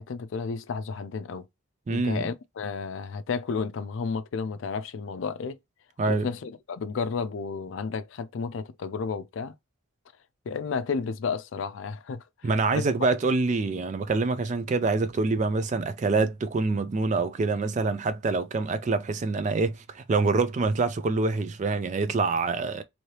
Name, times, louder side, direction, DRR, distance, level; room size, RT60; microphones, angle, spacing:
voice 1, 0.0-1.5 1.9-5.6 6.1-9.5 10.5-12.9, left 5 dB, 65° left, 0.4 m, -32 dB
voice 2, 1.9-2.3 6.0-6.3 12.4-22.8, right 3 dB, 35° right, 0.3 m, -26 dB
3.2 x 2.7 x 2.8 m
head